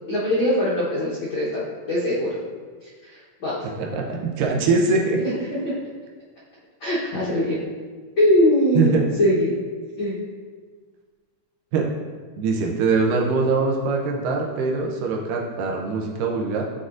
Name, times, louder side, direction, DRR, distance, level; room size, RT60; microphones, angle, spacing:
voice 1, 0.1-1.6 1.9-2.4 3.0-3.7 5.6-5.7 6.8-7.6 8.2-9.6 10.0-10.2, left 1 dB, 85° left, -9 dB, 1.0 m, -21 dB
voice 2, 3.8-5.2 8.8-9.1 11.7-11.9 12.4-16.6, right 4 dB, 85° right, 0 dB, 2.3 m, -22 dB
9.3 x 4.1 x 2.5 m, 1.5 s
omnidirectional pair, 3.8 m